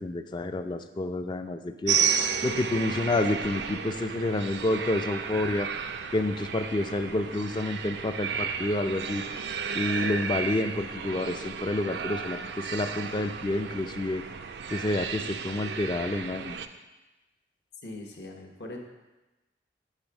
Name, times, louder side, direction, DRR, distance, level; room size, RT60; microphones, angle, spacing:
voice 1, 0.0-2.0 2.4-5.7 6.1-9.2 9.7-14.2 14.7-16.5, left 2 dB, 25° left, 8 dB, 0.3 m, -29 dB
sound 1, 1.9-16.7, right 7 dB, 75° right, 0.4 m, -33 dB
voice 2, 17.8-18.8, left 2 dB, 70° left, 1 dB, 1.1 m, -41 dB
8.1 x 3.4 x 6.0 m, 1.1 s
head